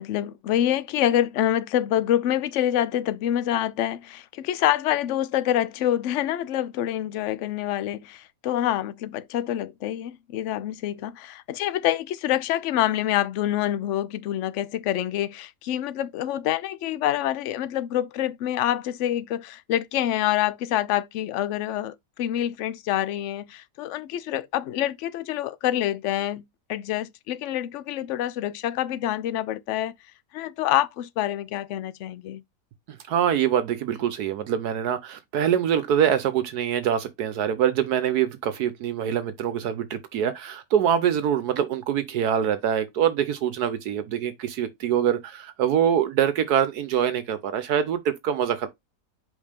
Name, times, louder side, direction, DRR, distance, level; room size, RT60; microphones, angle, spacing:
voice 1, 0.0-26.4 26.7-29.9 30.3-32.4, left 12 dB, 65° left, 0.7 m, -26 dB
voice 2, 32.9-48.7, right 9 dB, 70° right, 1.2 m, -24 dB
5.4 x 3.6 x 5.1 m
omnidirectional pair, 1.8 m